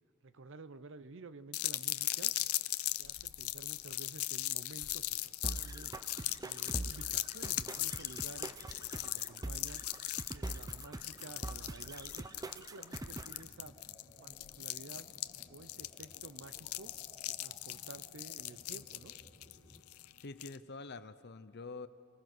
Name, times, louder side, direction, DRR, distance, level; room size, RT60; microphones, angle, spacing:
voice 1, 0.2-2.3 3.0-5.9 6.4-8.5 8.8-9.8 10.3-12.3 12.5-13.8 14.2-15.1 15.5-16.9 17.3-19.1, right 3 dB, 60° right, 14 dB, 0.7 m, -52 dB
sound 1, 1.5-20.6, left 16 dB, 85° left, 0.6 m, -39 dB
sound 2, 5.4-13.4, right 2 dB, 15° right, 0.6 m, -43 dB
sound 3, 13.0-19.8, equal, 15° left, 2.7 m, -60 dB
voice 2, 20.2-21.9, left 3 dB, 50° left, 12 dB, 0.8 m, -46 dB
27.5 x 20.0 x 6.2 m, 2.7 s
head